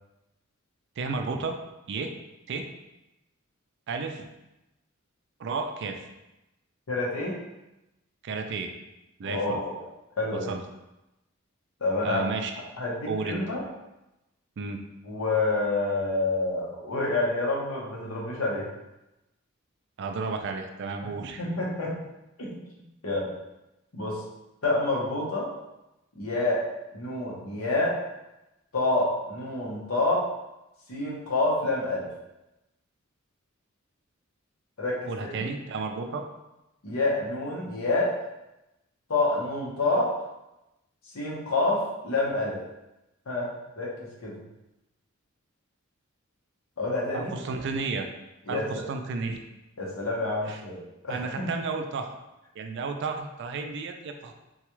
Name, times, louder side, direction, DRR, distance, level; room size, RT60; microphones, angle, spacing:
voice 1, 1.0-1.6 1.9-2.1 2.5-2.7 3.9-4.3 5.4-6.0 8.2-8.7 9.2-9.6 10.3-10.6 12.0-12.5 13.1-13.4 14.6-14.8 20.0-21.4 35.1-36.2 47.1-48.1 48.5-49.4 50.5-50.6 51.1-52.1 52.6-54.3, right 4 dB, 55° right, 5 dB, 0.4 m, -32 dB
voice 2, 6.9-7.4 9.2-9.7 10.2-10.5 11.8-12.2 12.8-13.6 15.1-18.7 21.0-21.1 21.4-22.0 22.4-22.6 23.0-23.3 23.9-24.2 24.6-25.5 26.2-26.6 26.9-28.0 28.7-30.3 30.9-32.1 34.8-35.5 36.8-38.1 39.1-40.1 41.1-42.6 43.3-44.4 46.8-47.3 48.5-48.7 49.8-50.8 51.0-51.5, left 2 dB, 75° left, -4 dB, 1.0 m, -28 dB
3.9 x 2.3 x 3.0 m, 0.95 s
head